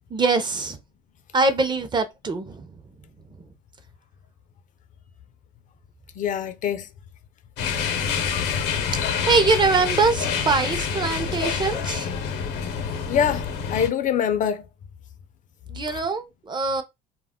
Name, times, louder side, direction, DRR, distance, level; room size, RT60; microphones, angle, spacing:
voice 1, 0.1-0.8 1.3-2.7 9.2-12.1 15.7-16.8, right 4 dB, 25° right, 0.5 m, -23 dB
voice 2, 6.2-6.9 13.1-14.7 15.9-16.0, left 8 dB, 50° left, 0.4 m, -24 dB
sound 1, 7.6-13.9, left 6 dB, 80° left, 0.7 m, -27 dB
2.3 x 2.1 x 3.5 m
cardioid pair, 110°, 17 cm